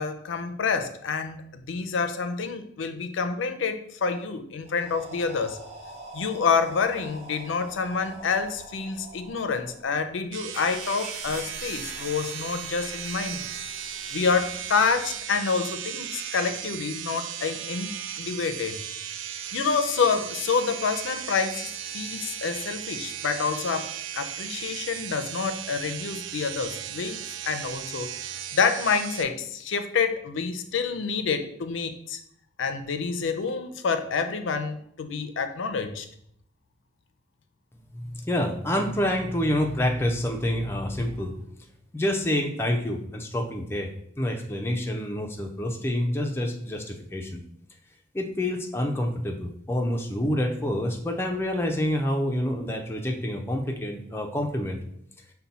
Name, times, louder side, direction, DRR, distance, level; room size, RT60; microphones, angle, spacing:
voice 1, 0.0-5.6 6.1-13.4 14.1-18.8 19.5-28.1 28.5-32.2 32.6-36.1, left 5 dB, 75° left, 8 dB, 0.5 m, -28 dB
sound 1, 4.6-10.5, right 2 dB, 30° right, 0.6 m, -45 dB
sound 2, 10.3-29.2, right 9 dB, 85° right, 0.3 m, -36 dB
RG Volvo Engine, 10.5-15.2, right 1 dB, 10° right, 1.7 m, -44 dB
voice 2, 37.9-41.3 41.9-47.4 48.1-54.8, left 1 dB, 10° left, 2 dB, 0.4 m, -27 dB
5.5 x 2.2 x 4.0 m, 0.68 s
head